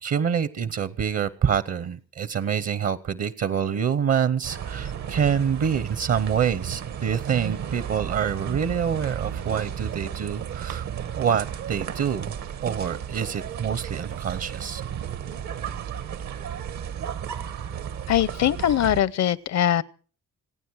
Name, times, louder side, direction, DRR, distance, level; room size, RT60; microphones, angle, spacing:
voice 1, 0.0-10.9 11.2-12.3 12.6-14.8, right 7 dB, 55° right, 0.9 m, -26 dB
sound 1, 4.4-19.0, right 8 dB, 70° right, 1.2 m, -33 dB
voice 2, 18.1-19.8, left 11 dB, 65° left, 0.7 m, -22 dB
28.0 x 9.4 x 4.7 m
cardioid pair, 90°, 30 cm